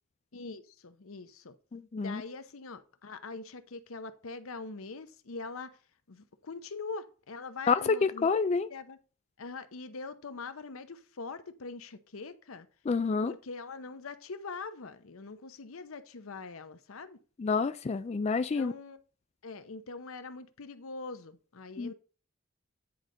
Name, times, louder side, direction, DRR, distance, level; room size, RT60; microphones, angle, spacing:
voice 1, 0.3-1.5 2.0-5.8 6.1-8.3 8.7-9.0 9.4-12.7 13.2-17.2 18.5-19.0 19.4-21.9, left 4 dB, 85° left, 0.8 m, -43 dB
voice 2, 1.7-2.2 7.7-8.7 12.9-13.3 17.4-18.7 21.8-21.9, left 4 dB, 30° left, 0.3 m, -28 dB
9.6 x 3.9 x 5.1 m
head